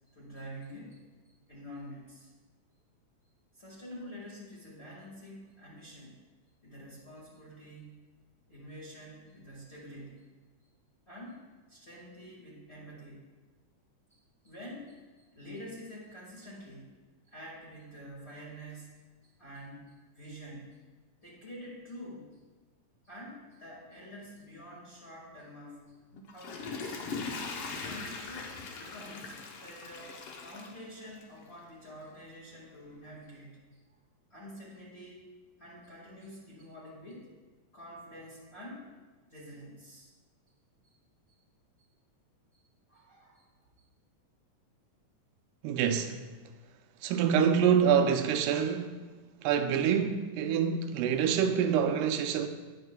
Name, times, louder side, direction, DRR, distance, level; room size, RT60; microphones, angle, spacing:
voice 1, 0.1-2.3 3.5-6.2 6.6-8.0 8.5-10.3 11.1-11.4 11.7-13.2 14.1-17.0 17.3-20.7 21.2-22.3 23.0-27.0 27.8-33.9 34.3-35.3 35.6-37.3 37.7-38.9 39.3-40.1 40.8-40.9 42.5-42.6 42.9-43.5, equal, 25° left, 1.5 m, -48 dB
Water / Toilet flush, 26.1-31.4 31.9-32.0, left 4 dB, 80° left, 1.3 m, -40 dB
voice 2, 45.6-46.2 47.0-49.0 49.4-52.5, right 7 dB, 90° right, 2.2 m, -26 dB
17.5 x 6.4 x 2.2 m
omnidirectional pair, 3.6 m